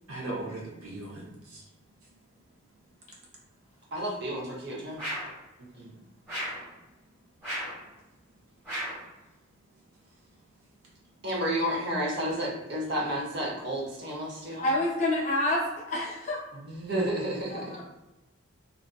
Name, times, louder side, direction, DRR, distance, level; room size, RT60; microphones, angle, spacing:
voice 1, 0.1-1.6 5.6-6.0 6.6-6.7, right 2 dB, 85° right, -3 dB, 0.8 m, -39 dB
voice 2, 3.9-5.0 11.2-14.7 16.6-17.8, equal, 50° right, -4 dB, 0.7 m, -31 dB
sound 1, 5.0-5.4 6.3-6.7 7.4-7.8 8.6-9.1, equal, 10° right, 1.1 m, -34 dB
voice 3, 14.6-16.4 17.5-17.8, left 1 dB, 35° left, -2 dB, 0.5 m, -28 dB
2.4 x 2.4 x 2.3 m, 0.99 s
head